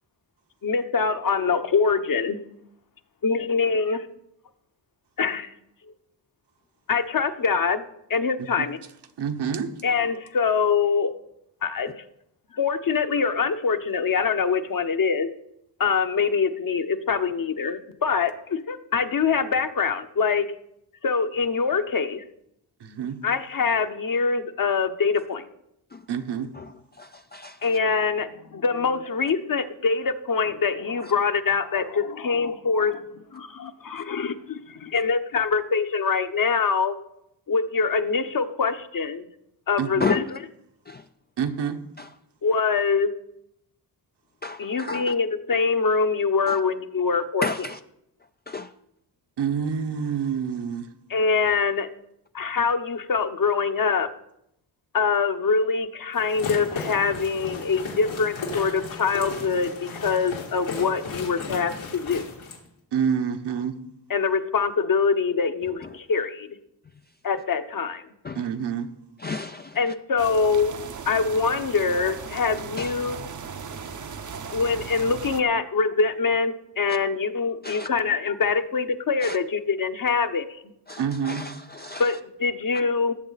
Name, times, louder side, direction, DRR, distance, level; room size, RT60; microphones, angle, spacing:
voice 1, 0.6-2.4 3.2-4.1 5.2-5.5 6.9-7.8 8.1-8.8 9.8-11.1 11.6-12.0 12.5-15.3 15.8-20.5 21.0-22.2 23.2-25.4 27.6-37.0 37.5-39.3 39.7-40.4 42.4-43.1 44.6-47.5 51.1-51.9 52.3-54.1 54.9-62.2 64.1-66.5 67.2-68.0 69.8-70.7 71.1-73.2 74.5-80.5 82.0-83.1, left 5 dB, 45° left, 1.0 m, -24 dB
voice 2, 9.2-9.7 22.8-23.2 26.1-26.5 39.8-39.9 41.4-41.8 49.4-50.9 62.9-63.8 68.4-68.9 81.0-81.4, right 7 dB, 60° right, 1.2 m, -27 dB
voice 3, 26.5-27.7 31.0-31.1 34.0-34.1 40.0-40.2 40.9-41.0 42.0-42.2 44.4-45.1 46.5-46.6 47.4-47.8 48.5-48.7 65.8-66.0 68.2-68.5 69.2-69.9 72.8-73.0 74.4-74.6 76.9-77.0 77.6-77.9 79.2-79.4 80.9-82.1, left 4 dB, 25° left, 0.4 m, -33 dB
sound 1, 56.1-62.6, left 4 dB, 85° left, 3.1 m, -35 dB
sound 2, 70.2-75.4, right 6 dB, 40° right, 0.9 m, -37 dB
18.5 x 7.4 x 4.1 m
cardioid pair, 75°, 46 cm